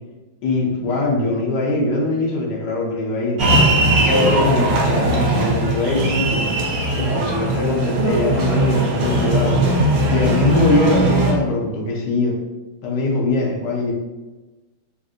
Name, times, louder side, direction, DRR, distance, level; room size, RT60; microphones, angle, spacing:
voice 1, 0.4-3.4 4.1-6.6 6.9-9.8 10.1-12.3 12.8-13.9, left 2 dB, 70° left, -2 dB, 1.2 m, -21 dB
sound 1, 3.4-11.3, right 1 dB, 85° right, 0.7 m, -19 dB
3.5 x 2.5 x 2.4 m, 1.1 s
omnidirectional pair, 2.1 m